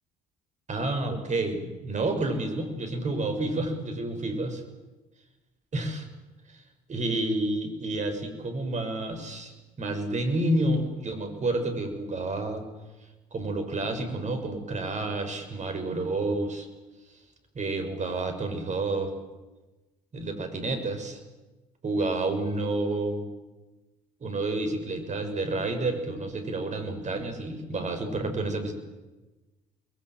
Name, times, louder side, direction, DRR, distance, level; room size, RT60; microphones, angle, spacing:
voice 1, 0.7-4.6 5.7-6.0 6.5-6.6 6.9-12.6 13.3-16.7 17.5-19.1 20.1-21.2 21.8-23.3 24.2-28.7, right 2 dB, 40° right, 7 dB, 6.5 m, -29 dB
29.0 x 21.5 x 7.7 m, 1.1 s
hypercardioid pair, 55°, 19 cm